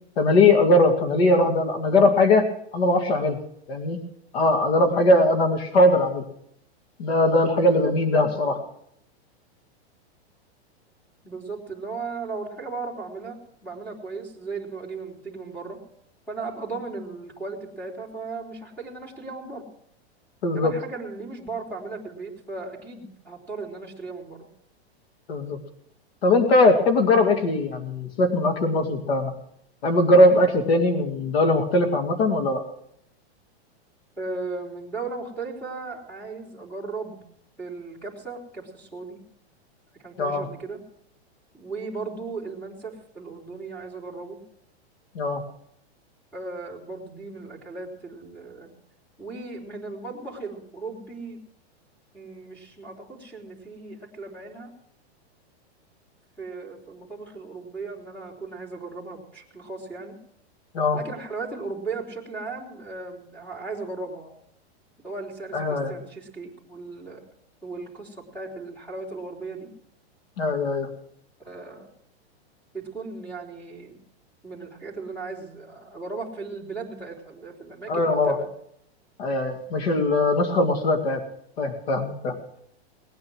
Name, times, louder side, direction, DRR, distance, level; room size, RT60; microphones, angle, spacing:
voice 1, 0.2-3.4 3.7-4.0 4.3-6.2 7.0-8.6 20.4-20.7 25.3-25.6 26.2-29.3 29.8-32.6 40.2-40.5 45.2-45.4 60.7-61.0 65.5-65.9 70.4-70.9 77.9-78.4 79.2-81.2 81.6-82.4, left 2 dB, 70° left, 5 dB, 2.3 m, -20 dB
voice 2, 11.2-15.8 16.3-19.6 20.5-24.5 34.2-37.2 37.6-39.2 40.0-40.8 41.5-44.4 46.3-48.7 49.2-51.4 52.1-54.7 56.4-60.2 60.9-64.3 65.0-67.2 67.6-69.7 71.4-71.9 72.7-74.0 74.4-78.5, right 3 dB, 5° left, 0 dB, 3.3 m, -36 dB
19.0 x 9.5 x 6.2 m, 0.71 s
hypercardioid pair, 155°, 33 cm